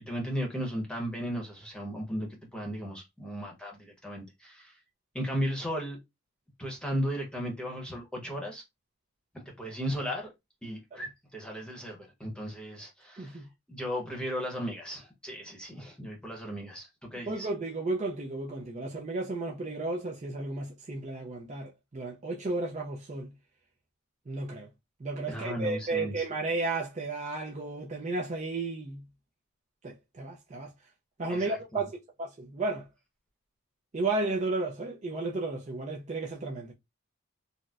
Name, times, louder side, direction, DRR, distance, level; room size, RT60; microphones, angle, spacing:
voice 1, 0.1-4.7 5.1-6.0 6.6-8.6 9.3-10.3 10.6-13.4 13.7-17.5 25.3-26.2 31.3-31.8, equal, 5° left, 0.8 m, -36 dB
voice 2, 13.2-13.5 17.3-23.3 24.3-24.7 25.0-29.0 29.8-30.7 31.2-32.9 33.9-36.7, right 3 dB, 35° right, 0.4 m, -33 dB
4.1 x 2.0 x 2.4 m
head